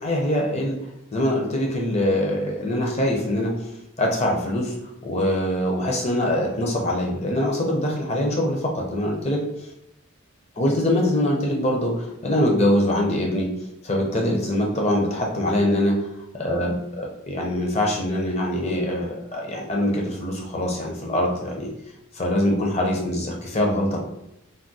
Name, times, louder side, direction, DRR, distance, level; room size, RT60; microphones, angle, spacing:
voice 1, 0.0-0.8 1.1-3.5 4.0-4.8 5.0-9.4 10.6-13.5 13.8-16.0 16.3-21.7 22.2-24.0, left 1 dB, 30° left, 0 dB, 0.5 m, -23 dB
3.5 x 2.1 x 2.6 m, 0.82 s
head